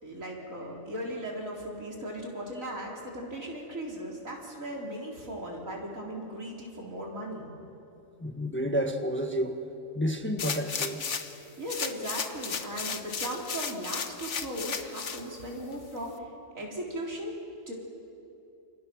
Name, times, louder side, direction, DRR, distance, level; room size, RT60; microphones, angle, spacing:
voice 1, 0.0-7.5 11.6-16.3 16.5-17.4 17.7-17.8, right 1 dB, 80° right, -2 dB, 4.6 m, -37 dB
voice 2, 8.2-9.6 9.9-11.0, equal, 10° left, 4 dB, 1.4 m, -30 dB
sound 1, 10.4-11.4 11.7-15.2 15.7-15.8, left 6 dB, 60° left, 1.5 m, -34 dB
29.0 x 28.5 x 6.3 m, 2.8 s
omnidirectional pair, 1.4 m